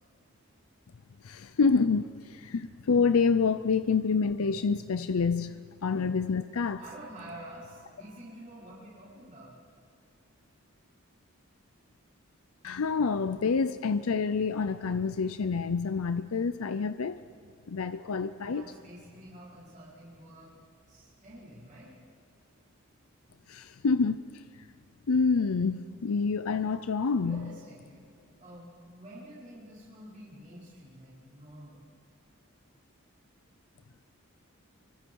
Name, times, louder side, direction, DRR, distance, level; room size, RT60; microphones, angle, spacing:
voice 1, 1.2-5.5 5.8-6.8 12.6-17.2 17.7-18.7 23.5-24.7 25.1-27.5, left 5 dB, 90° left, 0.6 m, -27 dB
voice 2, 6.8-9.5 18.4-20.5 20.9-21.9 27.1-28.0 28.4-31.8, right 1 dB, 35° right, 5.0 m, -48 dB
29.0 x 24.5 x 4.7 m
head